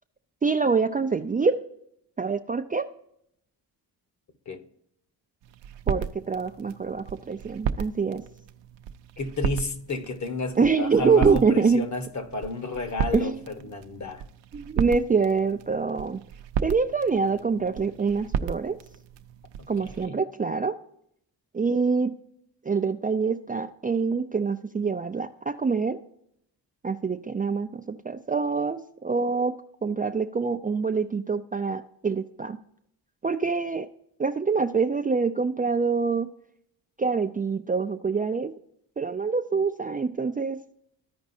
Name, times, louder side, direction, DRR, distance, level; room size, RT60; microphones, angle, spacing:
voice 1, 0.4-1.6 2.2-2.9 5.9-8.2 10.6-11.8 13.1-13.4 14.5-16.2 16.6-18.8 19.7-20.8 21.5-22.1 22.6-26.0 26.8-29.5 29.8-32.6 33.2-33.9 34.2-36.3 37.0-38.5 39.0-40.6, right 5 dB, 20° right, 0.4 m, -25 dB
sound 1, 5.4-20.1, right 8 dB, 75° right, 0.7 m, -34 dB
voice 2, 9.2-14.2 19.6-20.2, left 3 dB, 40° left, 1.3 m, -31 dB
14.5 x 5.2 x 2.7 m
cardioid pair, 90°, 43 cm